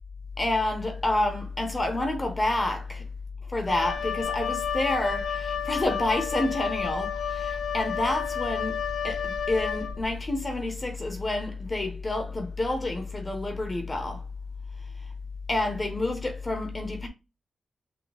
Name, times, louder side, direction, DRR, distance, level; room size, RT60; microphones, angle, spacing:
voice 1, 0.4-3.0 3.5-14.2 15.5-17.1, left 2 dB, 20° left, 0.8 m, -28 dB
Wind instrument woodwind instrument, 3.7-10.2, left 8 dB, 75° left, 0.7 m, -31 dB
5.8 x 2.3 x 4.0 m
wide cardioid pair, 175°, 0 cm